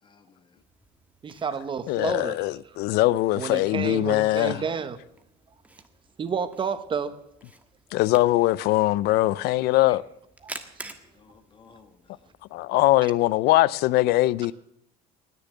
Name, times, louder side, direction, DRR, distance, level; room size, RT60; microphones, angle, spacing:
voice 1, 0.0-0.6 9.8-10.0 11.0-12.3, left 5 dB, 30° left, 1.3 m, -55 dB
Camera, 0.6-12.6, right 2 dB, 10° right, 1.4 m, -49 dB
voice 2, 1.2-2.4 3.4-5.0 6.2-7.2 10.4-10.5, right 6 dB, 30° right, 1.1 m, -30 dB
voice 3, 1.9-4.6 7.9-10.0 12.5-14.5, left 17 dB, 70° left, 0.5 m, -21 dB
19.5 x 6.9 x 9.2 m
cardioid pair, 135°, 17 cm